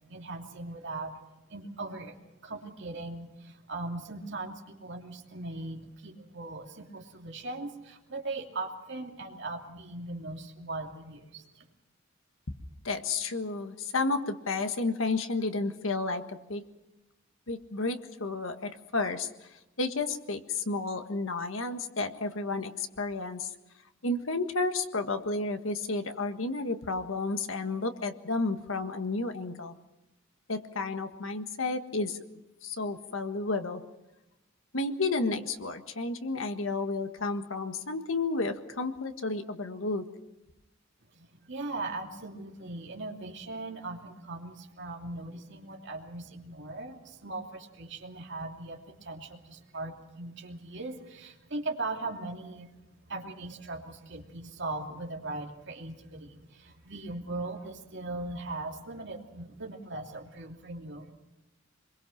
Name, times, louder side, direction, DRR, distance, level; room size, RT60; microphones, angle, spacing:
voice 1, 0.1-11.7 41.1-61.1, right 2 dB, 60° right, 1 dB, 2.9 m, -39 dB
voice 2, 12.8-16.6 17.5-23.5 24.0-29.7 30.5-32.2 32.6-33.8 34.7-40.1, left 3 dB, 80° left, 7 dB, 1.6 m, -32 dB
24.5 x 22.0 x 5.9 m, 0.98 s
head